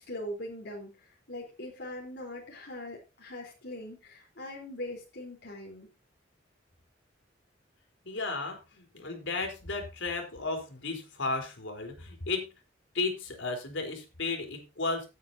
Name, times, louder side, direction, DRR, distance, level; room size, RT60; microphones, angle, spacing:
voice 1, 0.0-5.9, left 1 dB, 60° left, -1 dB, 4.0 m, -41 dB
voice 2, 8.0-12.5 12.9-15.1, left 3 dB, 80° left, 4 dB, 4.1 m, -34 dB
17.5 x 9.5 x 2.8 m, 0.28 s
head